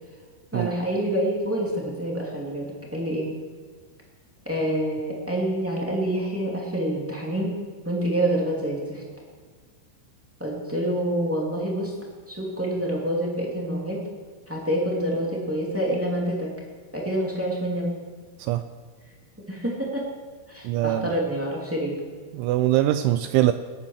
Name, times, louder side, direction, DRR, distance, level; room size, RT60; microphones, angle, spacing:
voice 1, 0.5-3.3 4.4-7.5 7.8-9.0 10.4-11.9 12.3-14.0 14.5-16.5 16.9-17.9 19.5-20.0 20.5-22.0, right 1 dB, 10° right, -4 dB, 0.6 m, -27 dB
voice 2, 20.6-21.1 22.3-23.5, right 14 dB, 85° right, 10 dB, 2.7 m, -22 dB
20.5 x 8.9 x 6.4 m, 1.5 s
omnidirectional pair, 5.9 m